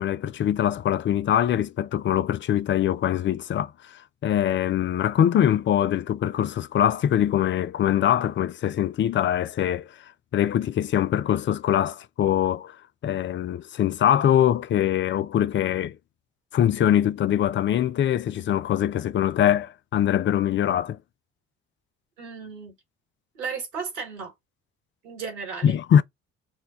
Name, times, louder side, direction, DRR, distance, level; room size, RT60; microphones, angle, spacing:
voice 1, 0.0-12.8 13.0-16.0 16.5-21.0 25.6-26.0, left 10 dB, 35° left, 0.4 m, -23 dB
voice 2, 22.2-22.7 23.3-24.3 25.0-25.8, right 5 dB, 85° right, 1.8 m, -34 dB
4.4 x 2.2 x 3.5 m
hypercardioid pair, 55°, 34 cm